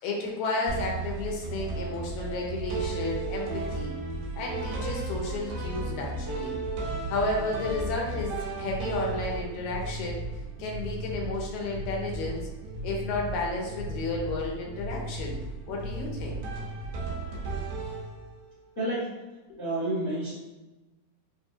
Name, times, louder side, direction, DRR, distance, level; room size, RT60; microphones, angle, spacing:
voice 1, 0.0-3.9 4.3-6.6 7.1-10.2 10.6-12.5 12.8-15.4 15.7-16.4 19.5-19.6, left 2 dB, 75° left, 0 dB, 2.1 m, -32 dB
sound 1, 0.7-18.5, right 2 dB, 90° right, 2.4 m, -34 dB
voice 2, 18.7-19.1 19.6-20.3, right 1 dB, 55° left, -11 dB, 0.6 m, -29 dB
5.3 x 2.5 x 2.6 m, 1.1 s
omnidirectional pair, 3.5 m